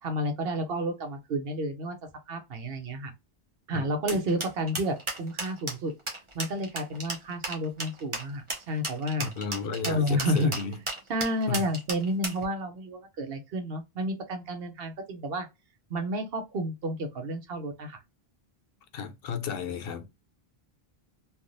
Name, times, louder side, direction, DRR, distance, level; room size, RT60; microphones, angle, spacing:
voice 1, 0.0-1.9 2.3-3.1 3.7-5.9 6.3-9.3 9.9-10.5 11.1-15.5 15.9-18.0, equal, 70° right, 1.0 m, -30 dB
sound 1, 4.1-12.4, right 2 dB, 30° right, 0.9 m, -34 dB
voice 2, 9.2-10.8 11.5-11.7 18.9-20.1, left 5 dB, 70° left, 0.8 m, -34 dB
3.4 x 2.3 x 2.6 m
omnidirectional pair, 1.0 m